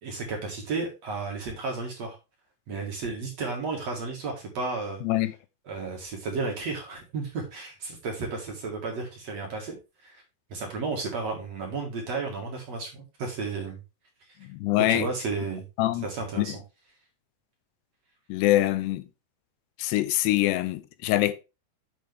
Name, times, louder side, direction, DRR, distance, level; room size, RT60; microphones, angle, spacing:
voice 1, 0.0-2.2 2.7-5.0 5.7-10.2 10.5-13.8 14.9-15.6 16.0-16.6, right 4 dB, 45° right, 2.7 m, -33 dB
voice 2, 14.5-15.1 15.8-16.1 16.4-16.5 18.3-19.0 19.8-21.3, left 16 dB, 85° left, 2.9 m, -24 dB
8.6 x 6.9 x 3.6 m
omnidirectional pair, 4.8 m